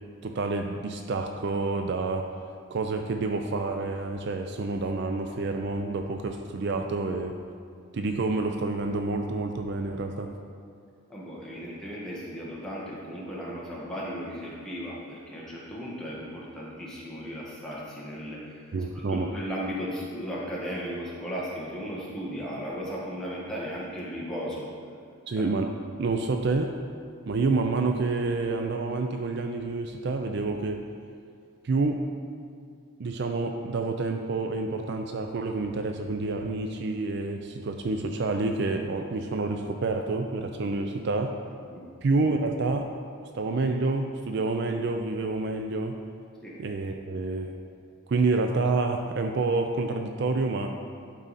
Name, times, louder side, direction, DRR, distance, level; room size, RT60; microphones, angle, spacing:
voice 1, 0.2-2.3 2.7-7.4 7.9-10.3 18.7-19.3 25.3-26.8 27.3-30.9 31.6-32.1 33.0-41.4 42.0-42.9 43.3-46.0 46.6-47.6 48.1-50.8, right 3 dB, 50° right, 5 dB, 0.4 m, -28 dB
voice 2, 11.1-24.7 25.4-25.5 41.7-41.8 46.4-46.6, equal, 5° left, -6 dB, 1.3 m, -36 dB
11.5 x 4.8 x 4.1 m, 2.3 s
head